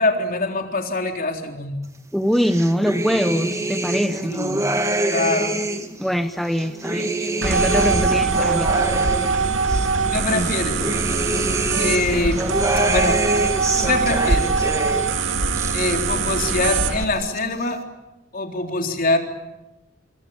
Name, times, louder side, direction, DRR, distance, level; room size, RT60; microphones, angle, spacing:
voice 1, 0.0-1.8 4.3-4.7 5.1-5.6 10.0-10.9 11.8-12.4 12.9-13.2 13.8-14.7 15.7-17.8 18.3-19.2, left 2 dB, 50° left, 3 dB, 3.8 m, -24 dB
voice 2, 2.1-4.4 6.0-8.7 10.3-10.5, equal, ahead, 7 dB, 1.1 m, -23 dB
sound 1, 2.3-6.0 6.4-9.9 10.3-15.2 15.5-16.3 16.6-17.4, right 1 dB, 15° right, 2.3 m, -26 dB
sound 2, 6.6-14.4, equal, 20° left, 4.9 m, -44 dB
sound 3, 7.4-17.0, right 4 dB, 85° right, 2.0 m, -22 dB
26.5 x 25.0 x 8.8 m, 0.99 s
head